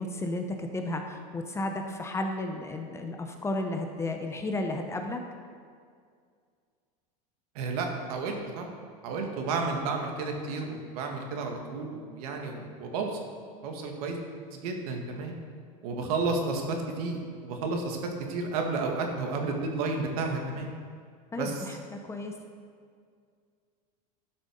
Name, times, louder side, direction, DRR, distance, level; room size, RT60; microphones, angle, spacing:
voice 1, 0.0-5.2 21.3-22.3, left 2 dB, 15° left, 4 dB, 0.8 m, -33 dB
voice 2, 7.6-8.7 9.0-13.2 13.6-14.2 14.5-15.3 15.8-18.0 18.3-20.7 21.4-21.6, right 3 dB, 70° right, 2 dB, 1.8 m, -32 dB
12.5 x 6.3 x 5.3 m, 2.1 s
supercardioid pair, 135°, 20 cm